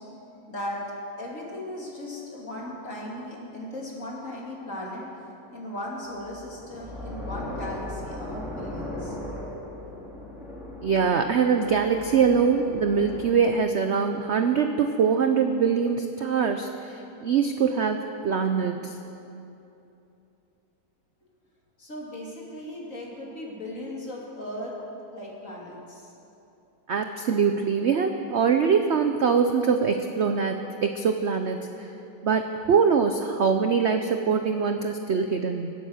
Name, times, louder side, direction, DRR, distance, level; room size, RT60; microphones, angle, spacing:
voice 1, 0.5-0.8 1.2-5.1 5.5-9.2 21.8-24.8 25.1-26.1, left 1 dB, 45° left, -3 dB, 3.1 m, -37 dB
sound 1, 6.1-13.3, left 1 dB, ahead, 2.9 m, -38 dB
voice 2, 10.8-19.0 26.9-30.6 30.8-31.6 32.2-35.7, right 6 dB, 65° right, 6 dB, 0.6 m, -23 dB
24.0 x 8.3 x 6.5 m, 2.9 s
omnidirectional pair, 2.0 m